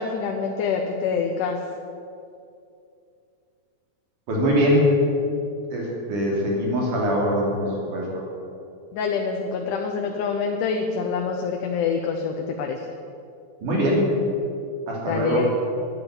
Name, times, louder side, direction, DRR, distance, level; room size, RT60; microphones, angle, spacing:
voice 1, 0.0-1.6 8.9-12.8 15.1-15.5, left 5 dB, 90° left, 2 dB, 2.5 m, -26 dB
voice 2, 4.3-5.0 5.7-8.1 13.6-14.1 14.9-15.4, equal, 80° right, -3 dB, 4.4 m, -22 dB
11.0 x 9.4 x 8.9 m, 2.5 s
omnidirectional pair, 3.5 m